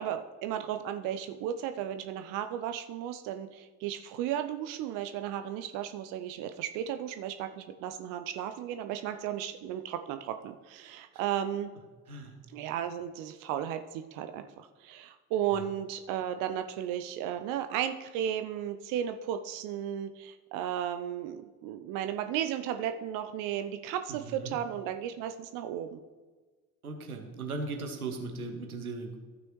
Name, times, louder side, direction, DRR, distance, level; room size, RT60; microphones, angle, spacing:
voice 1, 0.0-11.7 12.5-26.0, right 10 dB, 50° right, 8 dB, 0.6 m, -34 dB
voice 2, 24.1-24.6 26.8-29.2, right 3 dB, 85° right, 4 dB, 1.1 m, -38 dB
14.5 x 6.1 x 3.1 m, 1.4 s
figure-of-eight pair, 55°, 43 cm